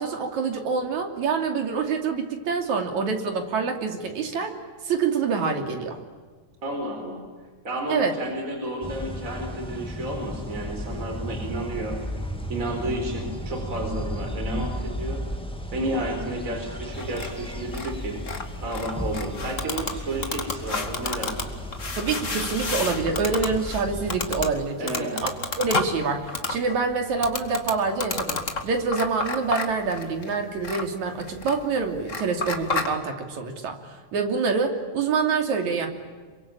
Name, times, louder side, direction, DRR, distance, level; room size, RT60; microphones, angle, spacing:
voice 1, 0.0-4.5 4.9-6.0 7.9-8.2 22.0-25.3 25.6-33.8 34.1-35.9, right 5 dB, 75° right, 4 dB, 4.3 m, -26 dB
voice 2, 6.6-7.2 7.6-12.0 12.5-15.2 15.7-18.2 18.6-21.5 24.8-25.1, right 1 dB, 25° right, 3 dB, 4.6 m, -31 dB
sound 1, 8.8-24.5, equal, ahead, 2.0 m, -34 dB
sound 2, 16.9-32.9, left 3 dB, 30° left, 2.0 m, -32 dB
28.0 x 24.0 x 8.9 m, 1.5 s
omnidirectional pair, 3.3 m